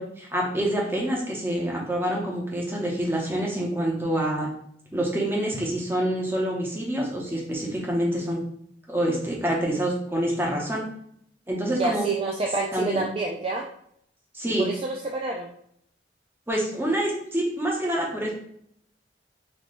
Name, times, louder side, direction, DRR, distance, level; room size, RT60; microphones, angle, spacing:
voice 1, 0.0-4.5 4.9-8.4 8.9-10.8 11.5-12.1 12.7-13.1 14.3-14.7 16.5-18.3, right 1 dB, 10° right, -2 dB, 1.0 m, -26 dB
voice 2, 11.7-13.6 14.5-15.5, right 3 dB, 30° right, 0 dB, 0.4 m, -28 dB
4.2 x 3.0 x 3.2 m, 0.68 s
head